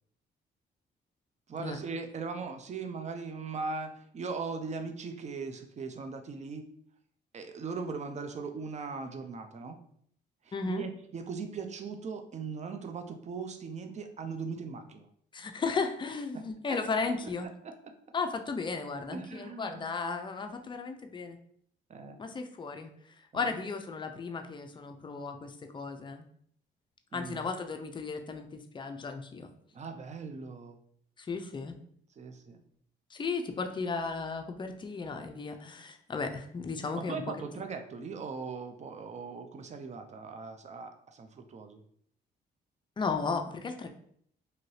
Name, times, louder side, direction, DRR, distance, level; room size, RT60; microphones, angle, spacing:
voice 1, 1.5-6.6 7.3-9.8 10.4-15.0 16.3-16.5 17.6-17.7 19.1-19.9 21.9-22.2 23.3-23.5 27.1-27.4 29.7-30.8 32.2-32.6 36.9-41.8, right 4 dB, 40° right, 6 dB, 0.5 m, -39 dB
voice 2, 10.5-10.8 15.3-17.5 18.1-21.4 22.2-22.9 23.3-26.3 27.1-29.5 31.2-31.7 33.1-37.2 37.6-37.7 43.0-43.9, left 4 dB, 25° left, 5 dB, 0.4 m, -35 dB
2.8 x 2.6 x 3.1 m, 0.65 s
cardioid pair, 85°, 19 cm